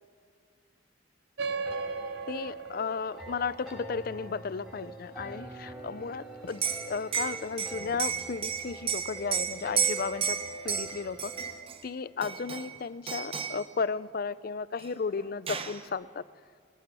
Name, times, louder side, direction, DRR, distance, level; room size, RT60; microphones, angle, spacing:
sound 1, 1.4-6.3, right 4 dB, 55° right, 0.6 m, -39 dB
sound 2, 1.5-11.6, right 1 dB, ahead, 5.2 m, -45 dB
voice 1, 2.3-10.4 10.6-11.3 11.8-16.2, left 5 dB, 50° left, 18 dB, 0.4 m, -34 dB
Liquid, 6.5-11.8 12.2-12.8 13.1-13.6 14.8-14.9 15.2-15.8, right 7 dB, 30° right, 1.0 m, -32 dB
21.0 x 19.0 x 6.9 m, 2.2 s
head